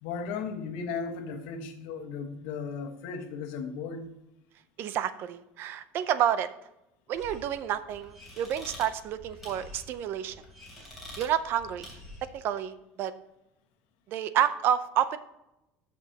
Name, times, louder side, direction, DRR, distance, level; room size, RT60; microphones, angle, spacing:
voice 1, 0.0-4.1, left 5 dB, 85° left, 4 dB, 1.3 m, -36 dB
voice 2, 4.8-6.5 7.1-10.3 11.2-11.9 12.3-13.1 14.1-15.2, right 10 dB, 40° right, 13 dB, 0.5 m, -29 dB
sound 1, 7.1-12.4, left 1 dB, ahead, 3.1 m, -47 dB
13.5 x 5.9 x 2.8 m, 0.90 s
cardioid pair, 175°, 5 cm